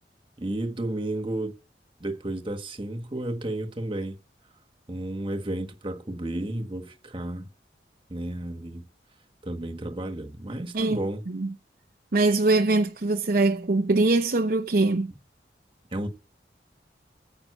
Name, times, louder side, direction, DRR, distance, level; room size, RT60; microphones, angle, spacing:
voice 1, 0.4-1.5 2.0-4.1 4.9-7.5 8.1-8.8 9.4-11.2 15.9-16.1, right 1 dB, 30° right, 1.5 m, -32 dB
voice 2, 12.1-15.1, right 2 dB, 50° right, 0.7 m, -22 dB
9.9 x 7.5 x 8.2 m
head